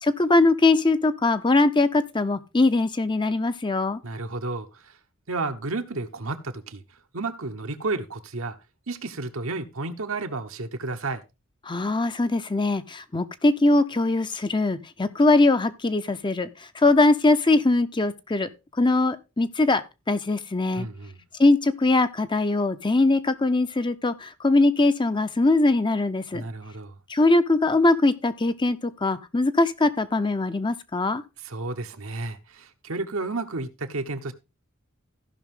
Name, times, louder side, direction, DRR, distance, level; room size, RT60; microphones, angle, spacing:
voice 1, 0.0-4.0 11.7-18.5 18.8-19.8 20.1-20.9 21.4-26.4 27.1-31.2, left 2 dB, 20° left, 0.6 m, -21 dB
voice 2, 4.0-5.0 5.3-6.8 7.1-8.6 8.9-11.2 20.7-21.2 26.3-26.9 31.4-34.3, right 3 dB, 75° right, 1.1 m, -32 dB
15.5 x 5.7 x 3.6 m
head